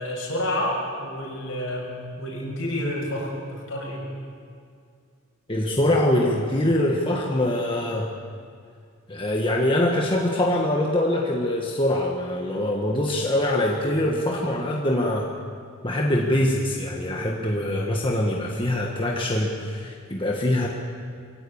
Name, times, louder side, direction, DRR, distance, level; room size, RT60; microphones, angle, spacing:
voice 1, 0.0-4.0, left 1 dB, 65° left, -2 dB, 6.6 m, -29 dB
voice 2, 5.5-8.1 9.1-15.3 15.8-20.7, left 1 dB, 25° left, -1 dB, 1.5 m, -23 dB
22.5 x 16.5 x 8.6 m, 2.2 s
head